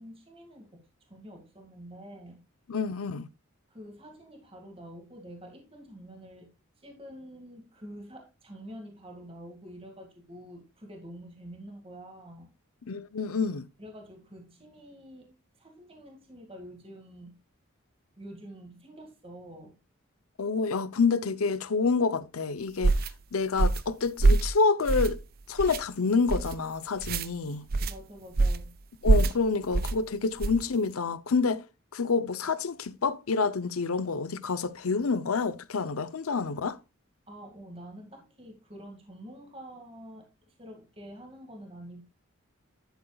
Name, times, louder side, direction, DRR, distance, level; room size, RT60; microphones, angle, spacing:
voice 1, 0.0-2.4 3.7-6.5 6.8-12.5 13.8-17.4 18.2-19.8 27.8-28.8 37.3-42.0, equal, 25° right, 2.0 m, -47 dB
voice 2, 2.7-3.3 12.9-13.7 20.4-23.0 23.3-25.2 25.5-27.6 29.0-31.6 31.9-36.8, left 4 dB, 85° left, 0.7 m, -28 dB
sound 1, 22.8-23.1 23.6-23.9 24.2-24.5 24.9-25.2 25.6-25.8 26.3-26.5 27.0-27.3 27.7-27.9 28.4-28.7 29.0-29.4 29.7-30.0 30.4-30.6, right 3 dB, 45° right, 0.5 m, -24 dB
10.5 x 8.0 x 2.3 m
head